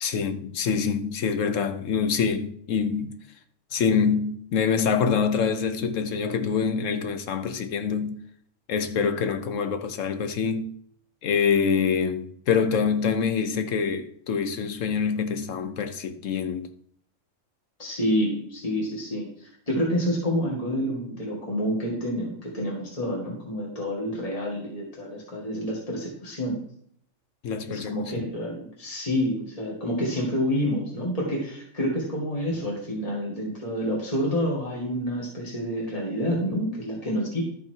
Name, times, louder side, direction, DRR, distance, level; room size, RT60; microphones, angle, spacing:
voice 1, 0.0-3.2 3.7-8.2 8.7-10.7 11.2-16.7 27.4-28.1, left 6 dB, 75° left, 1.1 m, -25 dB
voice 2, 17.8-26.6 27.7-37.4, equal, 30° left, 2.1 m, -28 dB
12.0 x 5.7 x 4.6 m
omnidirectional pair, 1.3 m